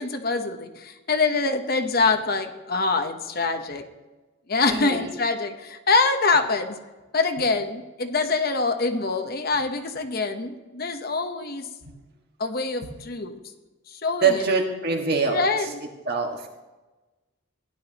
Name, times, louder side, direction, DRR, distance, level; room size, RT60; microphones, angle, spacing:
voice 1, 0.0-3.9 4.5-6.8 7.1-11.7 12.4-13.4 13.9-14.4 15.3-15.8, left 3 dB, 45° left, 6 dB, 0.9 m, -25 dB
voice 2, 4.7-5.1 11.8-11.9 12.9-13.0 14.2-15.4 16.0-16.5, right 5 dB, 50° right, 2 dB, 1.7 m, -24 dB
16.5 x 11.0 x 3.0 m, 1.1 s
head